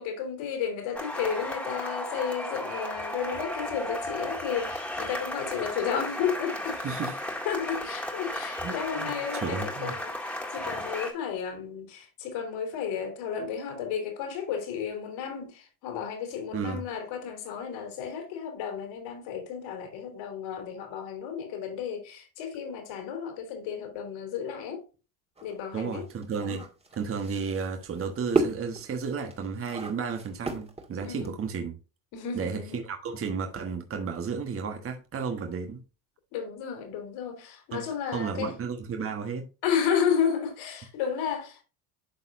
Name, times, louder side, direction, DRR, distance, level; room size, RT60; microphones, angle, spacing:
voice 1, 0.0-6.8 7.5-24.9 25.4-26.1 26.4-26.6 31.0-31.4 32.1-32.9 36.3-38.5 39.6-41.6, left 7 dB, 70° left, 3.6 m, -32 dB
sound 1, 1.0-11.1, left 1 dB, 5° left, 1.9 m, -34 dB
voice 2, 6.8-7.1 8.6-9.9 16.5-16.8 25.7-26.6 26.9-31.8 32.3-35.8 37.7-37.8 38.1-39.5, right 5 dB, 30° right, 1.3 m, -33 dB
sound 2, 25.4-31.5, right 3 dB, 15° right, 1.9 m, -33 dB
11.5 x 4.1 x 2.6 m
supercardioid pair, 100°, 46 cm